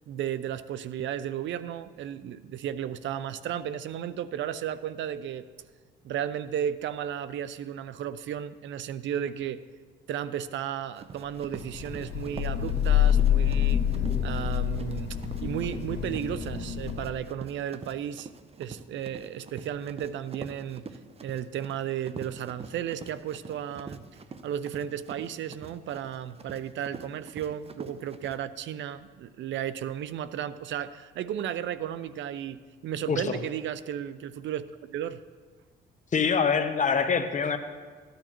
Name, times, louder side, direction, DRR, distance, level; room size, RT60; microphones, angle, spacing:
voice 1, 0.1-5.5 6.0-9.6 10.1-13.8 14.2-18.3 18.6-20.8 21.2-24.0 24.4-35.2, right 10 dB, 70° right, 15 dB, 0.5 m, -34 dB
Run, 10.9-28.4, right 4 dB, 30° right, 0.6 m, -45 dB
Thunder / Rain, 11.5-17.3, left 10 dB, 60° left, 1.8 m, -27 dB
voice 2, 33.1-33.4 36.1-37.6, left 6 dB, 40° left, 8 dB, 0.9 m, -25 dB
14.0 x 10.0 x 3.0 m, 1.5 s
cardioid pair, 90°, 20 cm